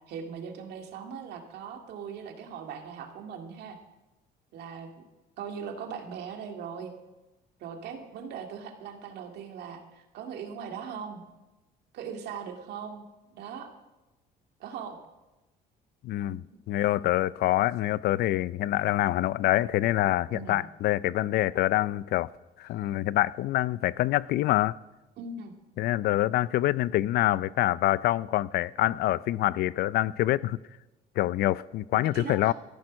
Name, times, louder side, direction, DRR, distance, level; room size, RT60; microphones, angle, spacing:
voice 1, 0.1-3.8 4.5-4.9 5.4-6.9 7.6-11.2 11.9-13.7 14.6-15.0 16.3-16.4 20.3-20.6 25.2-25.5 32.1-32.5, right 6 dB, 75° right, 2.1 m, -40 dB
voice 2, 16.0-16.4 16.7-22.3 22.6-24.8 25.8-30.6 31.2-32.5, left 15 dB, 70° left, 0.4 m, -26 dB
14.5 x 10.5 x 6.2 m
cardioid pair, 110°, 17 cm